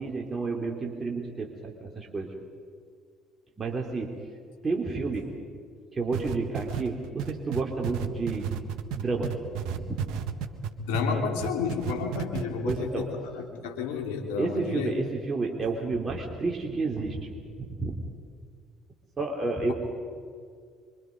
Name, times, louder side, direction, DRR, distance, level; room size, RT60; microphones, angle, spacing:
voice 1, 0.0-2.3 3.6-4.1 4.6-5.3 5.9-8.5 8.9-9.4 9.7-10.0 11.1-11.2 12.6-13.1 14.4-17.3 17.6-18.0 19.2-19.7, right 3 dB, 30° right, 0 dB, 3.3 m, -30 dB
sound 1, 6.1-11.1 11.4-12.4 12.7-12.8, right 9 dB, 65° right, 1.4 m, -32 dB
voice 2, 10.8-14.9, left 5 dB, 70° left, 2 dB, 3.3 m, -31 dB
25.5 x 25.0 x 5.4 m, 2.1 s
figure-of-eight pair, 55°, 0 cm